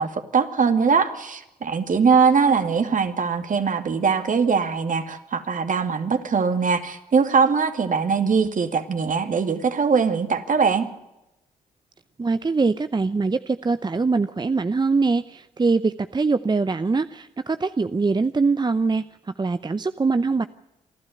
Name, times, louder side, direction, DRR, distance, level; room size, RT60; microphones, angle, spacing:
voice 1, 0.0-10.9, right 5 dB, 50° right, 8 dB, 2.4 m, -21 dB
voice 2, 12.2-20.5, right 4 dB, 25° right, 13 dB, 0.7 m, -23 dB
28.0 x 12.0 x 7.9 m, 0.91 s
hypercardioid pair, 45°, 17 cm